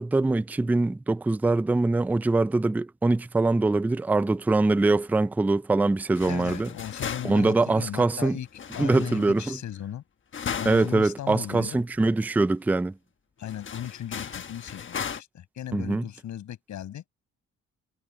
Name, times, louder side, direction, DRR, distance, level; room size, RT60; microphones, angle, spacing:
voice 1, 0.0-6.7 7.2-8.4 8.8-9.6 10.6-12.9 15.7-16.0, right 2 dB, 5° right, 0.4 m, -23 dB
sound 1, 6.1-7.6 8.5-9.6 10.3-11.0 11.4-11.5 11.9-12.0 13.4-15.2, left 7 dB, 40° left, 1.3 m, -36 dB
voice 2, 6.3-8.5 8.7-10.0 10.6-11.8 13.4-17.0, left 11 dB, 70° left, 5.7 m, -37 dB
cardioid pair, 90°, 30 cm